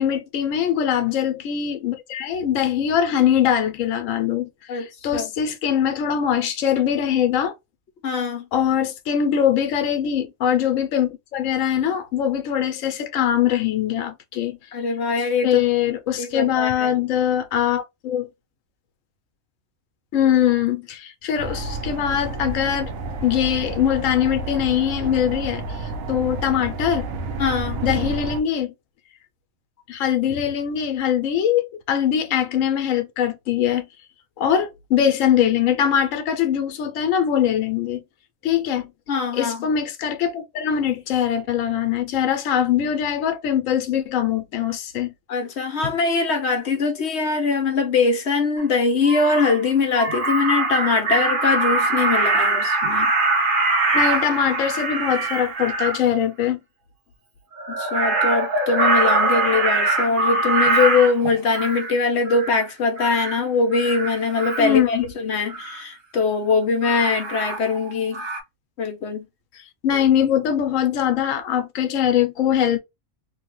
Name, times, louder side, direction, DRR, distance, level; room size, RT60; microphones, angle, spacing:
voice 1, 0.0-4.5 4.7-7.5 8.5-14.6 15.4-18.3 20.1-22.9 23.2-27.1 27.8-28.7 29.9-33.8 34.4-38.0 38.4-38.9 39.3-45.1 45.8-45.9 53.9-56.6 64.6-65.1 69.8-72.8, left 9 dB, 80° left, 1.0 m, -22 dB
voice 2, 8.0-8.5 14.7-15.6 16.2-17.0 27.4-27.8 39.1-39.7 45.3-53.1 57.7-68.2 68.8-69.2, left 4 dB, 60° left, 0.9 m, -22 dB
sound 1, 21.4-28.4, right 2 dB, 80° right, 1.0 m, -30 dB
Crow, 48.6-48.7 49.0-49.6 50.0-56.0 57.6-61.9 62.3-62.6 63.0-63.4 63.7-64.7 65.5-65.8 66.8-67.9 68.1-68.4, right 3 dB, 50° right, 0.7 m, -22 dB
3.2 x 2.2 x 2.9 m
omnidirectional pair, 1.4 m